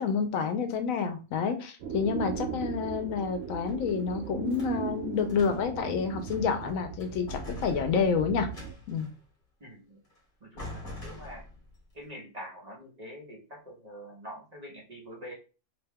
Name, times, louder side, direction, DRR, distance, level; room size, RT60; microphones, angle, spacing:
voice 1, 0.0-8.5 8.9-9.1, left 6 dB, 80° left, 7 dB, 1.0 m, -29 dB
sound 1, 1.8-8.7, right 8 dB, 70° right, 0.8 m, -38 dB
sound 2, 3.4-4.8 5.2-5.8 6.2-6.7 7.0-9.2 10.1-10.2 10.6-11.8, left 1 dB, 40° left, 1.3 m, -44 dB
voice 2, 9.6-10.0 10.4-11.5 11.9-15.3, equal, 35° right, -3 dB, 0.8 m, -45 dB
2.8 x 2.2 x 3.4 m, 0.33 s
omnidirectional pair, 1.4 m